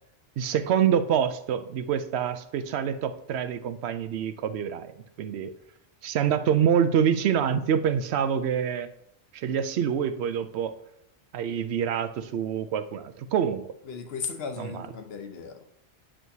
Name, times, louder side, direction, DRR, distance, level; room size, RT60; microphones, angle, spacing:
voice 1, 0.4-5.5 6.0-8.9 9.3-10.7 11.3-13.7 14.6-14.9, right 8 dB, 85° right, 12 dB, 0.8 m, -26 dB
voice 2, 13.9-15.6, left 5 dB, 70° left, 6 dB, 1.0 m, -36 dB
8.8 x 6.2 x 2.7 m, 0.75 s
omnidirectional pair, 1.1 m